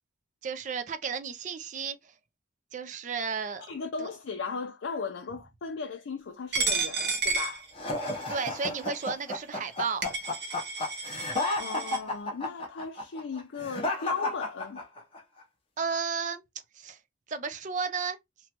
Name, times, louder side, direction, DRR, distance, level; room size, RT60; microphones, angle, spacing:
voice 1, 0.4-2.1 2.7-3.7 4.0-4.1 8.3-10.0 15.8-16.4 16.7-17.0 17.3-18.2, right 5 dB, 35° right, 0.4 m, -33 dB
voice 2, 3.6-7.7 11.2-11.3 11.6-14.8, left 5 dB, 65° left, 0.5 m, -36 dB
Coin (dropping), 6.5-8.3 8.9-9.1 9.7-9.8 10.0-12.0, right 4 dB, 55° right, 0.9 m, -31 dB
sound 1, 7.8-15.2, left 2 dB, 25° left, 0.7 m, -32 dB
3.0 x 2.2 x 2.8 m
head